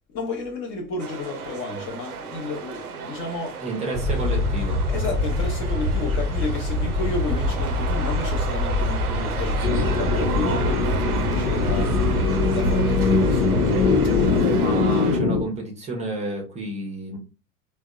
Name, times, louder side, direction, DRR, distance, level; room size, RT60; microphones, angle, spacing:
voice 1, 0.1-3.6 4.9-14.5, left 3 dB, 30° left, 0.6 m, -32 dB
sound 1, 1.0-15.2, right 6 dB, 85° right, 0.6 m, -33 dB
voice 2, 3.6-4.8 14.5-17.2, right 2 dB, 15° right, 0.6 m, -30 dB
sound 2, 3.9-14.4, left 1 dB, 5° left, 1.0 m, -25 dB
sound 3, 9.6-15.4, left 4 dB, 80° left, 0.7 m, -22 dB
3.4 x 2.1 x 2.2 m
figure-of-eight pair, 90°, 44 cm